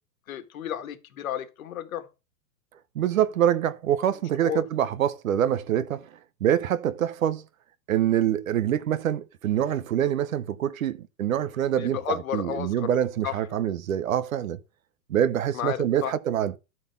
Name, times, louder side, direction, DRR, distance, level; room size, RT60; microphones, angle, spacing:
voice 1, 0.3-2.1 4.4-4.6 11.8-12.9 13.2-13.4 15.5-16.1, left 10 dB, 55° left, 1.6 m, -32 dB
voice 2, 2.9-6.1 6.4-7.4 7.9-14.6 15.1-16.6, right 10 dB, 55° right, 0.9 m, -25 dB
13.0 x 4.3 x 5.7 m
hypercardioid pair, 175°, 49 cm